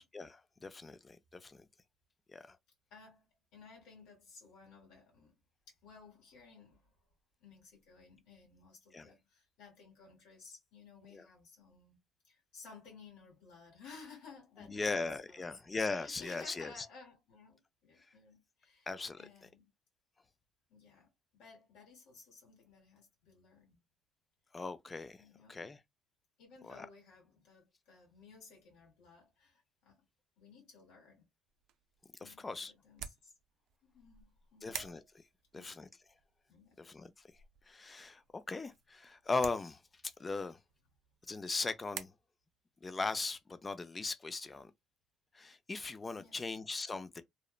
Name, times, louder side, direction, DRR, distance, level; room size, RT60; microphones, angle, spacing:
voice 1, 0.0-1.7 2.3-2.6 8.9-9.1 11.1-11.3 14.7-16.9 18.9-19.2 24.5-25.2 25.5-25.8 26.6-26.9 32.2-32.7 34.6-35.2 35.5-35.9 36.8-37.1 37.7-39.8 40.2-40.6 41.3-42.1 42.8-44.7 45.3-47.2, left 3 dB, 25° left, 0.4 m, -39 dB
voice 2, 2.9-5.4 5.7-6.9 7.4-15.0 15.3-15.5 15.9-18.9 19.2-19.7 20.7-23.8 25.2-25.7 26.4-30.0 30.4-31.3 32.2-33.3 33.8-34.7 35.5-35.8 36.5-36.8 46.1-46.5, left 4 dB, 85° left, 1.6 m, -57 dB
sound 1, 31.5-42.0, right 10 dB, 75° right, 0.4 m, -52 dB
2.9 x 2.0 x 2.3 m
cardioid pair, 125°, 0 cm